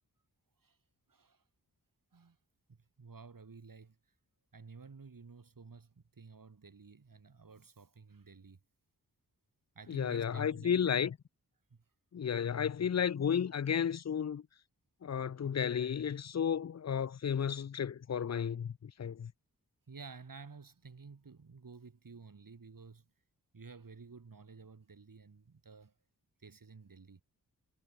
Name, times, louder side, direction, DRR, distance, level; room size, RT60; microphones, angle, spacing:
voice 1, 1.1-1.4 2.1-2.4 2.7-4.0 4.5-8.6 9.7-10.9 11.7-11.8 19.9-23.1 23.5-25.9 26.4-27.2, right 4 dB, 60° right, 2.5 m, -53 dB
voice 2, 9.9-11.1 12.1-14.4 15.0-19.3, left 8 dB, 45° left, 0.5 m, -33 dB
wide cardioid pair, 75°, 37 cm